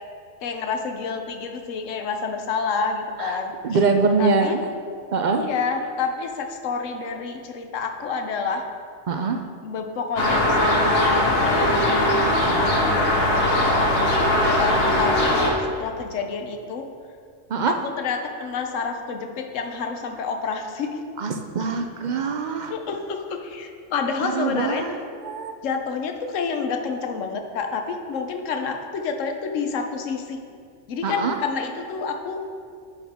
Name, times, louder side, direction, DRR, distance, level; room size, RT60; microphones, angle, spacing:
voice 1, 0.4-3.5 4.2-4.5 5.4-8.6 9.6-11.9 13.1-13.8 14.3-16.9 17.8-21.0 22.7-24.8 25.6-30.4 30.9-32.4, left 5 dB, 80° left, 5 dB, 1.1 m, -29 dB
voice 2, 3.2-4.6 5.1-5.5 9.1-9.4 17.5-17.7 21.2-22.7 24.2-25.5 31.0-31.4, right 4 dB, 55° right, 5 dB, 0.5 m, -24 dB
sound 1, 10.2-15.5, left 1 dB, 55° left, 1.2 m, -20 dB
9.4 x 5.9 x 3.5 m, 2.3 s
omnidirectional pair, 1.3 m